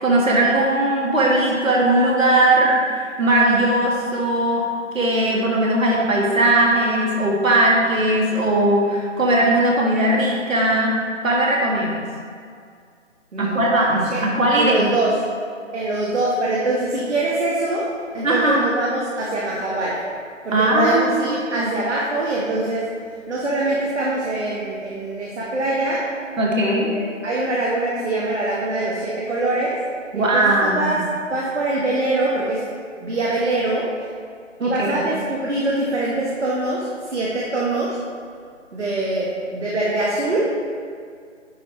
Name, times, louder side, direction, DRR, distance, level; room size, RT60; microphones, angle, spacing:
voice 1, 0.0-4.7 4.9-10.9 11.2-12.0 13.4-14.9 18.2-18.6 20.5-21.7 26.4-26.9 30.1-31.0 34.6-35.0, right 1 dB, 85° right, -2 dB, 1.8 m, -19 dB
voice 2, 14.5-15.1 15.7-20.0 20.4-22.9 23.3-26.1 26.9-29.8 30.1-31.0 31.3-32.6 33.0-33.9 34.6-38.0 38.7-40.5, right 2 dB, 60° right, -5 dB, 1.4 m, -23 dB
9.9 x 5.1 x 3.2 m, 2.2 s
figure-of-eight pair, 170°, 39 cm